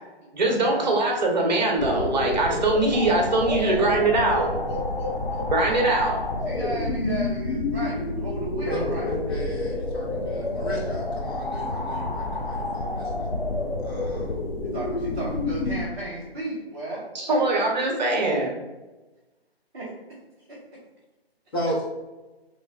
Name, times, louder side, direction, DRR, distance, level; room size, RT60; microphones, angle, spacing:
voice 1, 0.3-4.5 5.5-6.2 17.1-18.6, right 2 dB, 45° right, 0 dB, 0.8 m, -22 dB
sound 1, 1.8-15.8, left 2 dB, 60° left, 0.7 m, -29 dB
voice 2, 3.4-5.4 6.4-9.1 14.4-17.4 19.7-19.9 20.5-20.8, right 1 dB, 10° right, -15 dB, 0.5 m, -34 dB
voice 3, 8.7-13.3 13.8-14.4 21.5-21.9, right 1 dB, 20° left, -6 dB, 0.8 m, -34 dB
3.2 x 3.1 x 3.3 m, 1.1 s
figure-of-eight pair, 155°, 32 cm